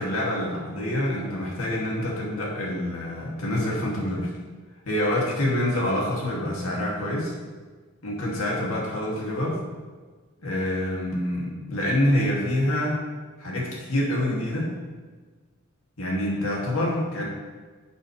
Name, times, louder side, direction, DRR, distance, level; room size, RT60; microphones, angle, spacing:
voice 1, 0.0-4.3 4.9-7.3 8.0-9.6 10.4-13.0 13.4-14.7 16.0-17.2, left 1 dB, 80° left, -3 dB, 2.4 m, -26 dB
11.5 x 6.6 x 3.3 m, 1.4 s
head